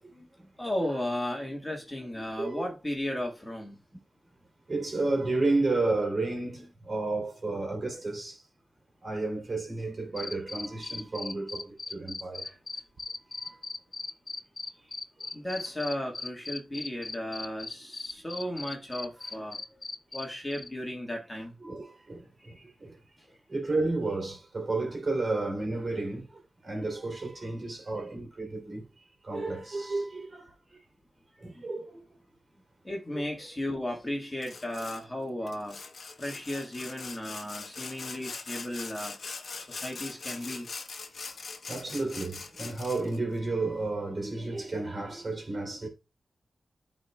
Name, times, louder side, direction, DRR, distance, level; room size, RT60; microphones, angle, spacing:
voice 1, 0.0-0.5 0.8-1.0 2.1-2.7 4.7-8.4 9.0-12.4 13.4-13.6 15.2-15.3 21.6-23.0 23.5-28.8 29.2-30.8 31.4-32.0 33.1-33.2 41.7-45.9, right 2 dB, 45° right, 3.0 m, -32 dB
voice 2, 0.6-3.7 15.3-19.6 20.1-21.5 27.4-27.5 32.8-35.8 36.2-39.1 39.7-40.7, left 1 dB, 15° left, 1.7 m, -35 dB
sound 1, 10.2-20.2 20.5-20.7, left 3 dB, 40° left, 0.5 m, -38 dB
Sawing, 34.4-35.0 35.5-43.2, left 4 dB, 60° left, 0.9 m, -41 dB
12.5 x 4.4 x 2.3 m
wide cardioid pair, 120°, 0 cm